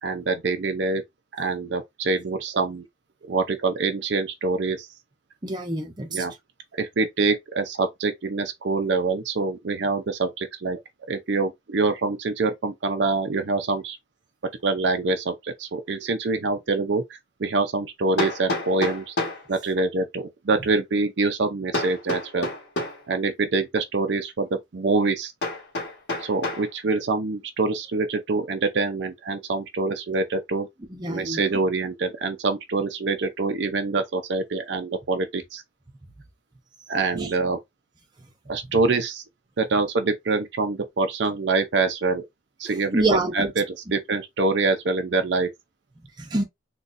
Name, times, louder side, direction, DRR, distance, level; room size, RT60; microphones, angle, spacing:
voice 1, 0.0-1.0 1.3-2.9 3.3-4.9 6.1-6.3 6.7-10.8 11.1-14.0 14.6-19.2 19.5-22.5 23.1-25.3 26.2-30.7 31.1-35.6 36.9-37.6 38.5-39.2 39.6-42.2 42.6-45.5, right 3 dB, 65° right, 0.5 m, -25 dB
voice 2, 5.4-6.2 30.9-31.4 37.1-37.3 42.9-43.5 46.2-46.4, right 2 dB, 20° right, 0.7 m, -26 dB
Hammer, 16.6-16.7 18.2-19.5 21.7-23.0 25.4-26.7, left 2 dB, 55° left, 1.3 m, -29 dB
4.0 x 2.3 x 2.5 m
head